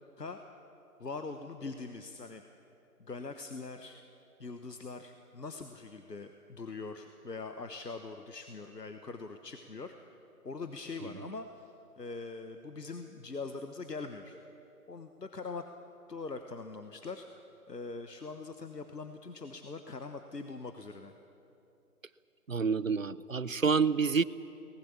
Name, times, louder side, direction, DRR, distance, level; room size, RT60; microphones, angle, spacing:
voice 1, 1.0-2.4 3.0-4.0 4.4-10.2 10.4-14.4 14.9-15.7 16.1-17.3 17.7-21.1, left 3 dB, 90° left, 7 dB, 1.3 m, -42 dB
voice 2, 22.5-24.2, right 5 dB, 55° right, 18 dB, 0.6 m, -28 dB
24.0 x 19.5 x 7.2 m, 2.8 s
figure-of-eight pair, 165°, 47 cm